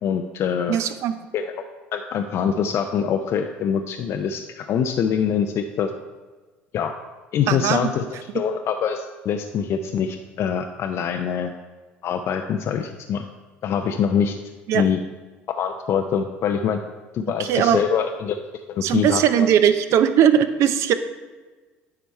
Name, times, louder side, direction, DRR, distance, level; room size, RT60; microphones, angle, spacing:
voice 1, 0.0-0.8 1.3-1.6 1.9-5.9 6.7-6.9 7.3-8.0 8.3-11.5 12.0-13.3 13.6-14.3 14.7-15.0 15.5-16.8 17.1-18.4 18.7-19.5, left 7 dB, 55° left, 5 dB, 0.4 m, -24 dB
voice 2, 0.7-1.2 7.5-7.9 14.7-14.9 17.4-17.8 18.8-20.9, right 9 dB, 60° right, 11 dB, 0.5 m, -19 dB
9.3 x 3.4 x 4.3 m, 1.3 s
hypercardioid pair, 70°, 6 cm